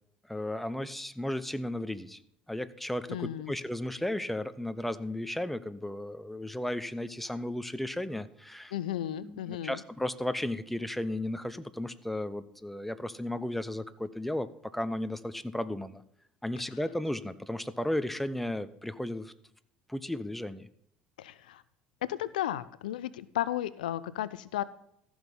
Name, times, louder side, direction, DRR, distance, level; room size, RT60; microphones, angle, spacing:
voice 1, 0.3-2.2 2.5-8.7 9.2-16.0 16.4-19.3 19.9-20.7, left 1 dB, 5° left, 13 dB, 0.9 m, -34 dB
voice 2, 3.1-3.5 8.7-9.8 21.2-21.6 22.1-24.6, left 12 dB, 80° left, 17 dB, 0.5 m, -34 dB
14.5 x 6.3 x 5.4 m, 0.72 s
hypercardioid pair, 65°, 4 cm